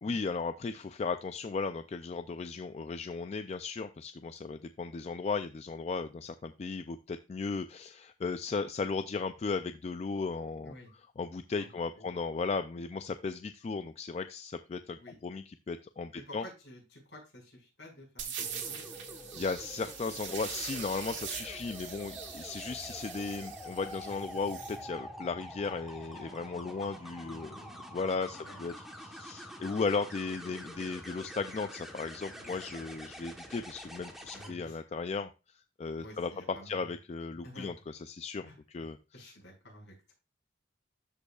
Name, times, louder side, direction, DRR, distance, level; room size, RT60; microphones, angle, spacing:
voice 1, 0.0-10.7 11.2-16.4 19.3-27.5 27.9-35.3 35.8-36.3 36.7-37.7 38.1-38.5 38.7-39.0, left 4 dB, 35° left, 9 dB, 0.3 m, -36 dB
voice 2, 11.6-12.1 15.0-15.2 16.1-18.8 26.7-26.8 27.2-28.0 28.3-28.6 32.3-32.6 34.3-34.8 36.0-36.9 37.4-37.7 38.4-38.6 39.1-40.1, left 1 dB, 60° left, -1 dB, 5.1 m, -51 dB
sound 1, 18.2-24.8, right 7 dB, 70° right, 1.9 m, -42 dB
sound 2, 18.4-34.5 36.4-36.7, equal, ahead, 1.1 m, -46 dB
12.5 x 5.3 x 2.3 m, 0.29 s
head